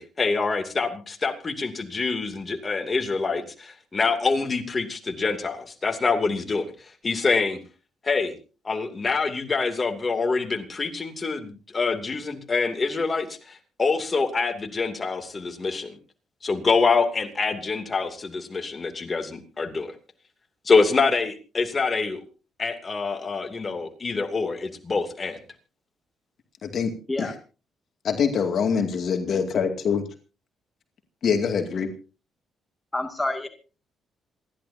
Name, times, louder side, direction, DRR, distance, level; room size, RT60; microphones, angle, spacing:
voice 1, 0.0-6.7 7.0-7.6 8.0-8.3 8.6-16.0 16.4-19.9 20.6-22.2 22.6-25.4, left 4 dB, 30° left, 6 dB, 2.6 m, -25 dB
voice 2, 26.6-26.9 27.2-27.3 28.0-30.0 31.2-31.9, left 6 dB, 60° left, 6 dB, 2.3 m, -24 dB
voice 3, 32.9-33.5, left 2 dB, 15° left, 5 dB, 2.2 m, -27 dB
27.5 x 11.5 x 2.7 m, 0.34 s
cardioid pair, 90°, 0 cm